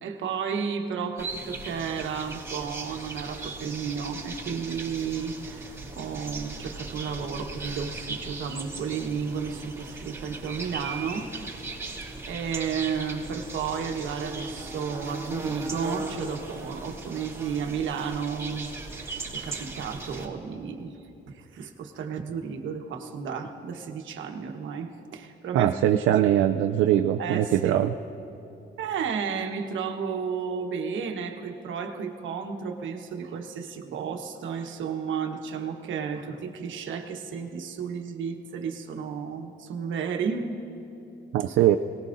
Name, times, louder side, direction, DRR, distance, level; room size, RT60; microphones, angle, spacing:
voice 1, 0.0-11.3 12.2-21.0 21.3-25.7 26.1-26.3 27.2-27.8 28.8-40.5, right 6 dB, 75° right, 4 dB, 1.3 m, -33 dB
sound 1, 1.2-20.3, right 3 dB, 15° right, 2.7 m, -38 dB
voice 2, 25.5-27.9 41.3-41.8, right 12 dB, 90° right, 5 dB, 0.4 m, -21 dB
22.5 x 19.0 x 2.6 m, 2.9 s
cardioid pair, 90°, 20 cm